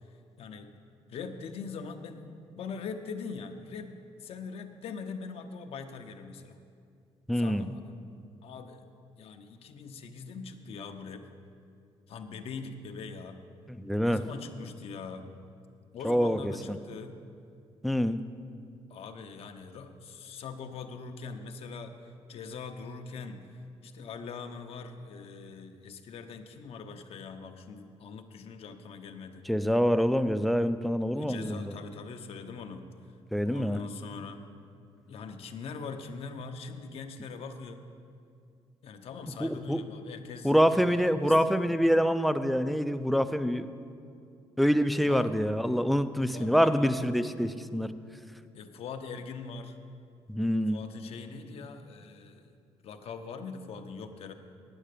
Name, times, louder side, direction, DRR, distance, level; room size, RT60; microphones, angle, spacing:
voice 1, 0.4-0.7 1.1-2.2 2.6-3.9 4.2-6.6 7.3-7.9 8.4-8.9 9.2-11.3 12.1-13.4 14.0-15.3 15.9-17.2 18.9-21.9 22.3-23.4 23.8-29.4 31.1-32.9 33.5-34.4 35.1-37.9 38.8-41.5 45.0-45.3 46.3-46.9 48.5-49.8 50.7-52.5 52.8-54.3, left 5 dB, 65° left, 6 dB, 0.8 m, -42 dB
voice 2, 7.3-7.7 13.8-14.2 16.0-16.4 16.7-16.8 17.8-18.2 29.5-31.7 33.3-33.8 39.4-39.8 40.4-43.7 44.6-47.9 50.3-50.8, equal, ahead, 10 dB, 0.4 m, -26 dB
9.1 x 8.8 x 6.7 m, 2.4 s
cardioid pair, 110°, 11 cm